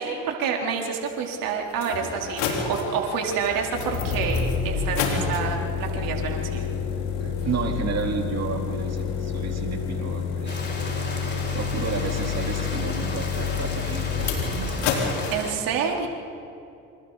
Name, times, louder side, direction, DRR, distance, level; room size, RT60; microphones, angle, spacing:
voice 1, 0.0-6.7 15.3-16.1, right 6 dB, 65° right, 1 dB, 3.7 m, -28 dB
sound 1, 1.1-1.2 1.7-15.3, left 6 dB, 75° left, 4.0 m, -28 dB
voice 2, 7.2-10.6 11.5-15.0, right 5 dB, 45° right, 2 dB, 3.8 m, -32 dB
Rain, 10.5-15.5, left 3 dB, 30° left, 5.1 m, -35 dB
27.0 x 27.0 x 4.1 m, 2.7 s
hypercardioid pair, 60°, 37 cm